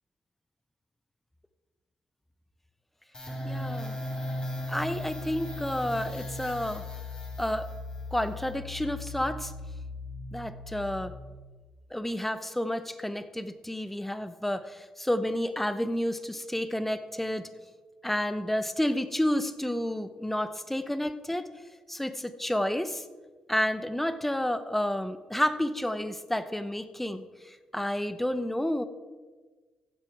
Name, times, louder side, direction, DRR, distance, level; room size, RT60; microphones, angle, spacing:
sound 1, 3.1-11.6, left 1 dB, 35° left, 3.3 m, -37 dB
voice 1, 3.4-4.0 4.7-6.8 7.4-7.7 8.1-9.5 10.3-11.1 11.9-17.5 18.0-21.5 21.9-23.0 23.5-28.8, left 1 dB, 10° left, 12 dB, 0.9 m, -30 dB
15.5 x 7.7 x 4.7 m, 1.3 s
supercardioid pair, 55°, 2 cm